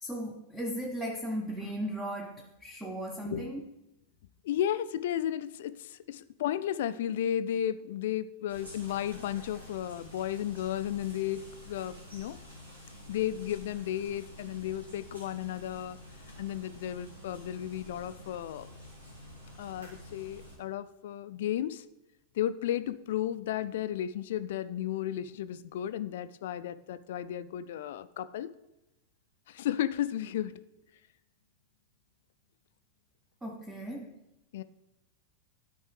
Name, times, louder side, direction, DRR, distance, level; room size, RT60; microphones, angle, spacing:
voice 1, 0.0-3.6 33.4-34.1, right 1 dB, 10° right, 2 dB, 0.7 m, -36 dB
voice 2, 4.4-12.4 13.1-16.0 16.4-18.7 19.6-21.8 22.4-28.5 29.5-30.6 34.5-34.6, left 11 dB, 55° left, 14 dB, 0.3 m, -34 dB
sound 1, 8.5-20.6, equal, 75° right, 2.0 m, -49 dB
12.5 x 4.5 x 3.3 m, 0.93 s
figure-of-eight pair, 90°, 0 cm